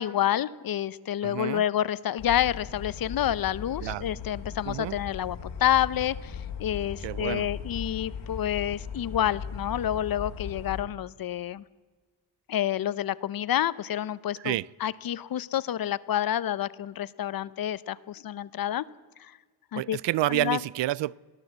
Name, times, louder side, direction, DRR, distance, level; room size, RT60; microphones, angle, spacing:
voice 1, 0.0-11.6 12.5-14.5 14.8-18.8 19.7-20.0 20.3-20.6, left 11 dB, 55° left, 0.7 m, -28 dB
voice 2, 1.2-1.6 3.8-4.1 4.7-5.0 7.0-7.5 14.4-14.7 19.7-21.2, right 15 dB, 85° right, 0.5 m, -29 dB
sound 1, 2.2-10.8, left 6 dB, 90° left, 2.5 m, -38 dB
22.5 x 15.5 x 8.0 m
wide cardioid pair, 160°, 42 cm